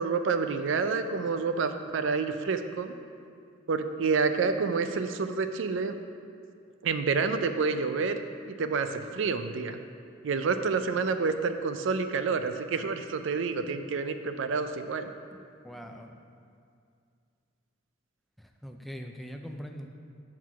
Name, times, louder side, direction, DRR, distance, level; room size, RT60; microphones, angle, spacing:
voice 1, 0.0-2.9 3.7-6.0 6.8-8.2 8.4-9.8 10.2-15.1, right 4 dB, 65° right, 9 dB, 0.4 m, -28 dB
voice 2, 15.6-16.2 18.4-19.9, equal, ahead, 3 dB, 0.3 m, -42 dB
6.0 x 4.6 x 5.7 m, 2.3 s
head